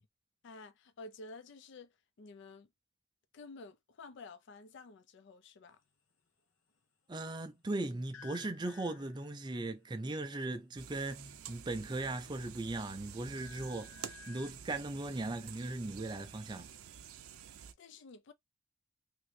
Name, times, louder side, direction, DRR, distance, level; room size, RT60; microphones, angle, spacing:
voice 1, 0.4-1.9 2.2-2.7 3.3-5.8 17.8-18.3, left 3 dB, 55° left, 0.4 m, -51 dB
voice 2, 7.1-16.7, right 2 dB, 20° right, 0.4 m, -38 dB
sound 1, 8.1-9.6 11.6-12.3 12.7-14.5, left 8 dB, 80° left, 0.8 m, -55 dB
sound 2, 10.8-17.7, right 8 dB, 85° right, 0.5 m, -50 dB
3.0 x 2.6 x 3.1 m
head